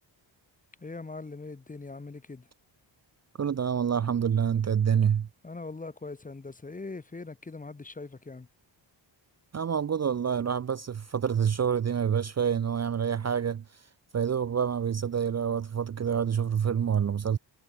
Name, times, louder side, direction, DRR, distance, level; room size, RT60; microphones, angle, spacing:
voice 1, 0.8-2.4 5.4-8.5, left 3 dB, 20° left, 1.0 m, -41 dB
voice 2, 3.4-5.3 9.5-13.6 14.1-17.4, right 7 dB, 35° right, 0.5 m, -27 dB
wide cardioid pair, 175°, 45 cm